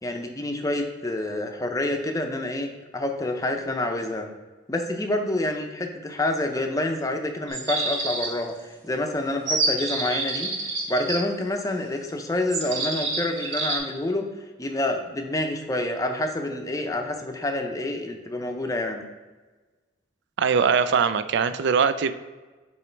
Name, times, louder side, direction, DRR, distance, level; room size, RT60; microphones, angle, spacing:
voice 1, 0.0-4.3 4.7-8.5 8.8-10.5 10.9-14.3 14.6-19.0, left 1 dB, 15° left, 4 dB, 0.6 m, -27 dB
sound 1, 7.5-8.5 9.5-11.2 12.5-13.8, right 3 dB, 85° right, 1.2 m, -27 dB
voice 2, 20.4-22.1, right 6 dB, 60° right, 12 dB, 0.3 m, -21 dB
7.0 x 3.1 x 4.4 m, 1.3 s
head